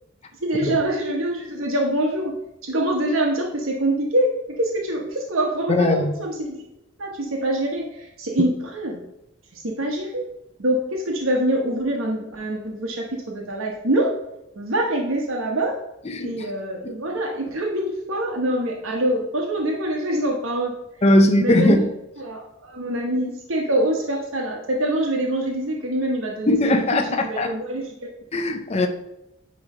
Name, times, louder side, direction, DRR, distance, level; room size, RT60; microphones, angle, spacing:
voice 1, 0.4-2.3 2.6-6.7 7.0-9.0 9.5-10.2 10.6-14.1 14.6-15.8 16.2-20.7 21.4-21.8 22.2-26.8 27.2-28.1, right 1 dB, 75° right, 1.1 m, -25 dB
voice 2, 5.7-6.2 16.1-16.5 21.0-21.9 26.5-27.5 28.3-28.9, left 1 dB, 30° left, 0.5 m, -19 dB
9.5 x 3.2 x 4.9 m
head